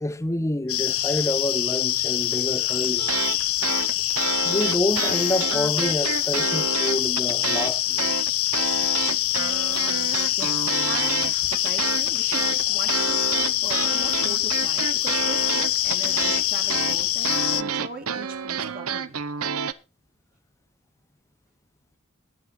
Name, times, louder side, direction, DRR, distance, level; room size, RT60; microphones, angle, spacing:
voice 1, 0.0-3.1 4.4-8.0, left 1 dB, 15° left, 0.6 m, -27 dB
sound 1, 0.7-17.6, left 14 dB, 70° left, 0.6 m, -24 dB
sound 2, 3.0-3.4 3.6-7.7 8.0-19.7, right 7 dB, 80° right, 0.8 m, -29 dB
voice 2, 10.3-19.2, right 3 dB, 45° right, 2.0 m, -40 dB
20.0 x 6.9 x 4.1 m
head